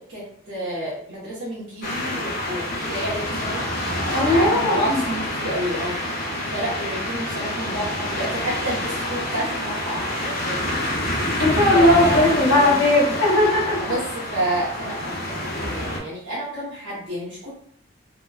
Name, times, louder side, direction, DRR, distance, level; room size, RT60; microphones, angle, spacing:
voice 1, 0.1-3.6 4.1-6.0 6.5-10.7 11.7-12.9 13.8-17.5, right 1 dB, 80° right, -9 dB, 0.9 m, -29 dB
sound 1, 1.8-16.0, left 1 dB, 50° left, 0.7 m, -27 dB
voice 2, 4.1-5.0 11.4-13.8, left 1 dB, 75° left, -6 dB, 1.0 m, -18 dB
2.9 x 2.2 x 2.3 m, 0.64 s
head